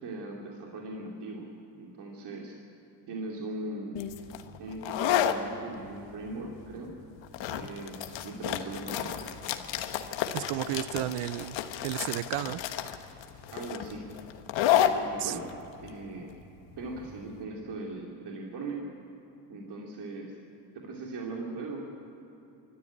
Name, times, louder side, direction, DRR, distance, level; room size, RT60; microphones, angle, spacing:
voice 1, 0.0-1.5 1.7-2.6 3.1-4.0 4.6-6.9 7.5-9.3 13.5-14.0 14.8-15.5 15.8-16.3 16.8-18.8 19.5-20.4 20.7-21.9, right 2 dB, 60° right, -1 dB, 2.8 m, -39 dB
sound 1, 4.0-17.4, left 10 dB, 70° left, 1.4 m, -31 dB
voice 2, 10.3-11.6 11.8-12.6 15.2-15.3, right 15 dB, 85° right, 17 dB, 0.7 m, -32 dB
24.0 x 13.0 x 8.7 m, 2.9 s
cardioid pair, 90°, 45 cm